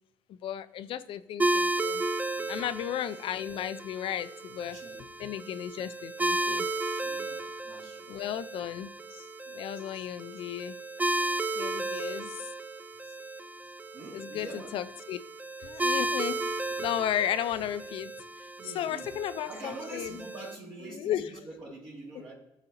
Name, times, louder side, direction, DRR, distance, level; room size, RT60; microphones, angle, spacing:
voice 1, 0.3-2.0 2.5-4.8 5.2-6.7 8.1-10.8 11.6-12.5 14.1-15.2 15.6-16.4 16.8-18.1 18.4-18.5 18.7-20.2 20.9-21.3, left 10 dB, 65° left, 14 dB, 0.4 m, -34 dB
sound 1, 1.4-20.5, right 2 dB, 15° right, 0.4 m, -34 dB
voice 2, 2.4-2.7 4.7-5.0 7.0-8.1 11.1-11.2 13.4-13.6 13.9-14.8 18.6-19.2 19.5-22.3, right 2 dB, 60° right, -7 dB, 2.2 m, -45 dB
11.5 x 4.0 x 2.9 m, 0.89 s
supercardioid pair, 75°, 10 cm